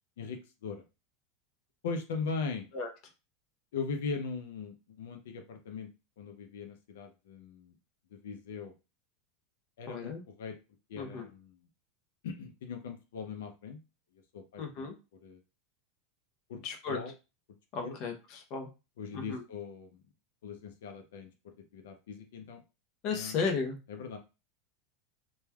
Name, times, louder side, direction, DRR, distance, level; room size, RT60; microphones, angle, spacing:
voice 1, 0.2-0.8 1.8-2.7 3.7-5.9 6.2-7.8 8.1-8.7 9.8-10.6 10.9-11.6 12.2-13.8 14.3-14.9 15.2-15.4 16.5-16.6 16.9-17.1 17.8-17.9 19.0-20.0 20.4-22.6 23.1-23.5 23.9-24.2, left 5 dB, 90° left, 5 dB, 0.4 m, -40 dB
voice 2, 9.9-10.2 11.0-11.2 14.6-14.9 16.6-17.0 17.7-18.7 19.1-19.4 23.0-23.8, left 5 dB, 45° left, 3 dB, 0.6 m, -34 dB
3.1 x 2.2 x 2.2 m, 0.29 s
supercardioid pair, 150°, 0 cm